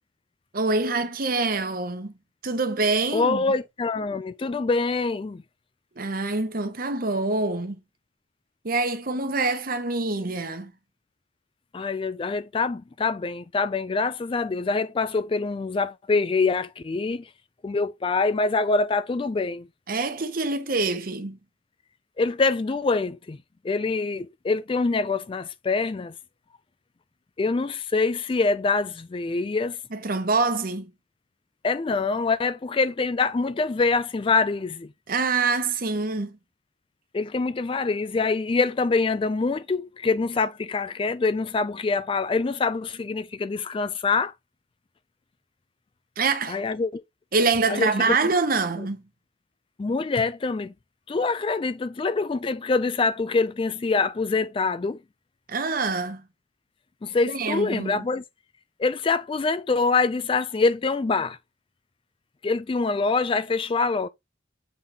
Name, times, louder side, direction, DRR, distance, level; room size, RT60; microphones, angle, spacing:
voice 1, 0.5-2.1 2.4-3.4 6.0-7.8 8.6-10.7 19.9-21.4 29.9-30.9 35.1-36.4 46.2-46.6 47.3-49.0 55.5-56.2 57.2-58.1, right 3 dB, 50° right, 1.0 m, -25 dB
voice 2, 3.1-5.4 11.7-17.3 17.6-19.7 22.2-23.4 23.6-26.1 27.4-29.8 31.6-34.9 37.1-44.3 46.5-47.0 47.7-48.2 49.8-50.7 51.1-55.0 57.0-58.2 58.8-61.4 62.4-64.1, left 4 dB, 25° left, 0.3 m, -25 dB
7.5 x 4.0 x 3.5 m
head